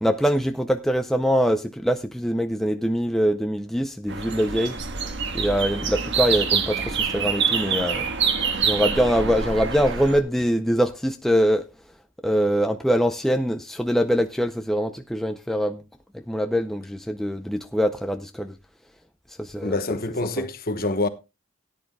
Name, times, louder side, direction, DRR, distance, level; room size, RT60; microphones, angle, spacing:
voice 1, 0.0-4.8 5.3-8.1 8.6-11.6 12.2-15.8 16.1-18.5 19.4-19.8 20.4-20.5, equal, ahead, 0.5 m, -23 dB
sound 1, 4.1-10.2, right 6 dB, 60° right, 1.5 m, -26 dB
voice 2, 19.6-21.1, left 2 dB, 45° left, 1.2 m, -26 dB
18.0 x 10.5 x 2.2 m
head